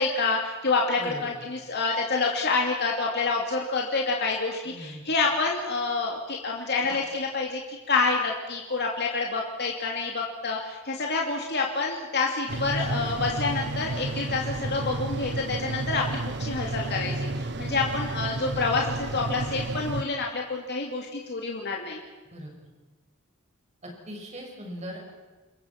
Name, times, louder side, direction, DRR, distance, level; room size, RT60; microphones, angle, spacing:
voice 1, 0.0-22.0, left 3 dB, 55° left, 0 dB, 2.7 m, -28 dB
voice 2, 1.0-1.4 4.7-5.0 22.3-22.5 23.8-25.1, equal, 35° right, 0 dB, 6.3 m, -40 dB
sound 1, 12.5-20.0, right 2 dB, 55° right, 1.0 m, -31 dB
28.5 x 22.5 x 6.0 m, 1.2 s
head